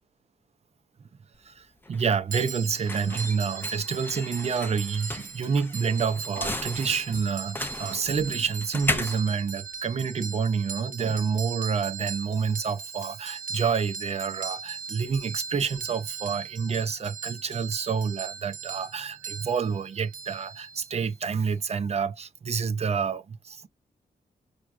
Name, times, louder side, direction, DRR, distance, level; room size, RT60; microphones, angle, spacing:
sound 1, 1.3-10.4, left 2 dB, 15° left, 0.5 m, -36 dB
voice 1, 1.4-23.7, right 6 dB, 40° right, 0.5 m, -28 dB
sound 2, 2.3-21.1, right 6 dB, 55° right, 0.9 m, -39 dB
5.8 x 2.3 x 2.5 m
wide cardioid pair, 135°, 16 cm